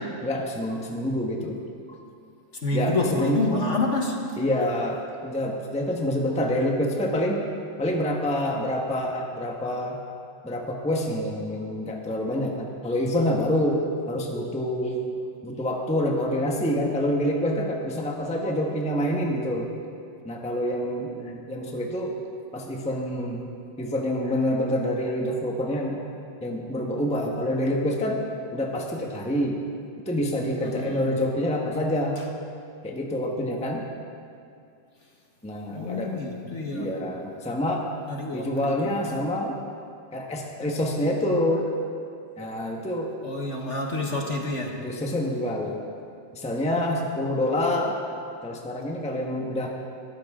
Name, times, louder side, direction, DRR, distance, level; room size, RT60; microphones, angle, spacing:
voice 1, 0.2-1.6 2.7-3.4 4.4-7.4 7.8-10.0 10.4-15.1 15.4-19.7 20.2-22.2 22.5-23.5 23.8-26.0 26.4-28.2 28.5-29.6 30.0-32.2 32.8-33.9 35.4-36.1 36.7-37.8 38.3-39.6 40.1-41.7 42.4-43.1 44.8-45.8 46.3-47.9 48.4-49.7, left 1 dB, 5° left, 0 dB, 1.2 m, -27 dB
voice 2, 2.6-4.2 30.6-31.2 35.7-36.9 38.1-38.9 43.2-44.8, left 2 dB, 45° left, 0 dB, 1.6 m, -28 dB
21.5 x 14.5 x 3.8 m, 2.4 s
omnidirectional pair, 1.9 m